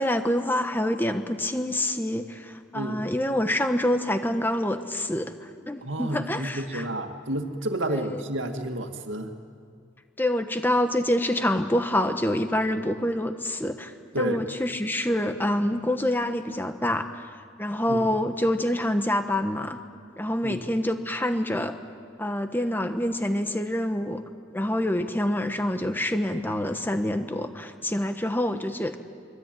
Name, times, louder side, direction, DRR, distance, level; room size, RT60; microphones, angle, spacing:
voice 1, 0.0-6.9 7.9-8.2 10.2-17.3 17.6-19.8 20.2-21.7 22.2-24.2 24.5-29.0, left 1 dB, 10° left, 7 dB, 1.2 m, -26 dB
voice 2, 2.7-3.1 5.8-9.3 14.1-14.4 17.9-18.0 20.4-20.6, right 1 dB, 75° right, 6 dB, 2.1 m, -30 dB
24.5 x 23.0 x 9.2 m, 2.2 s
head